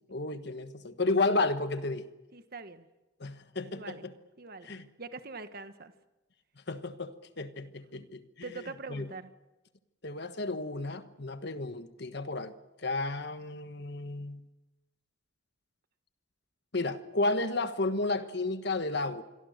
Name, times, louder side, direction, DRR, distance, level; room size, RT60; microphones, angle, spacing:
voice 1, 0.1-2.0 3.2-4.1 4.6-4.9 6.7-8.6 8.9-9.1 10.0-12.5 12.8-14.4 16.7-19.2, left 2 dB, 55° left, 10 dB, 1.4 m, -32 dB
voice 2, 2.3-2.9 3.7-4.0 4.4-4.7 5.0-5.9 7.9-8.0 8.4-9.3, right 3 dB, 50° right, 9 dB, 1.4 m, -43 dB
27.0 x 22.5 x 6.6 m, 1.1 s
head